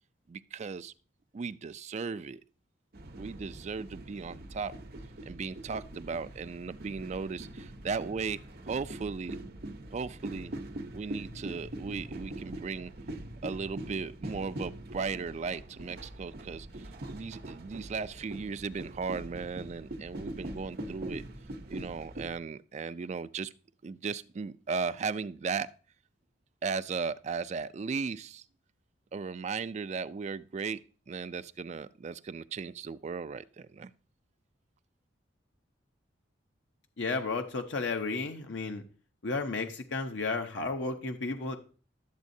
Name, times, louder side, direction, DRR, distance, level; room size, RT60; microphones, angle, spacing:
voice 1, 0.3-0.9 1.3-2.4 3.2-4.7 5.3-8.4 8.7-9.4 9.9-10.5 10.9-12.9 13.4-21.2 21.7-23.5 23.8-25.7 26.6-28.4 29.1-33.9, right 5 dB, 35° right, 0.3 m, -36 dB
sound 1, 2.9-22.3, right 1 dB, 55° right, 0.8 m, -43 dB
voice 2, 37.0-38.8 39.2-41.6, left 3 dB, 70° left, 0.8 m, -33 dB
12.0 x 7.3 x 2.7 m
head